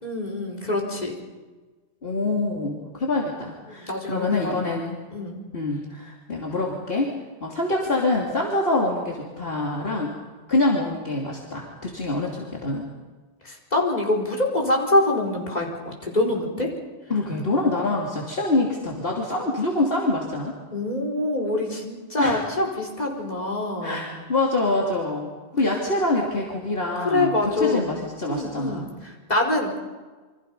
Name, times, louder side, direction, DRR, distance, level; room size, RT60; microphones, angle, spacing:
voice 1, 0.0-1.2 3.8-4.6 5.1-5.4 13.4-16.7 20.7-24.1 27.0-27.9 28.3-29.8, left 2 dB, 35° left, 1 dB, 4.6 m, -25 dB
voice 2, 2.0-5.0 5.5-7.1 7.4-10.1 10.5-12.8 17.1-20.5 22.2-22.4 23.8-28.9, left 2 dB, 55° left, -2 dB, 3.1 m, -25 dB
28.5 x 25.5 x 5.4 m, 1.3 s
omnidirectional pair, 1.2 m